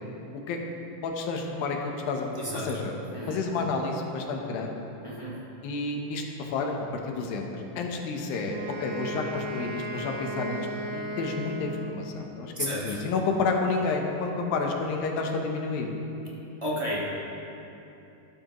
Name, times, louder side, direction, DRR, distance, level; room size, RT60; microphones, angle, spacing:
voice 1, 1.0-2.3 2.5-2.9 3.3-4.8 5.6-6.8 7.1-15.9, left 3 dB, 90° left, 2 dB, 2.8 m, -30 dB
voice 2, 2.3-2.7 3.1-3.4 5.0-5.3 12.5-12.8 16.6-17.0, equal, 15° right, -7 dB, 1.2 m, -32 dB
Wind instrument woodwind instrument, 8.5-12.2, equal, 70° right, 2.7 m, -35 dB
14.0 x 12.5 x 3.1 m, 2.9 s
omnidirectional pair, 4.0 m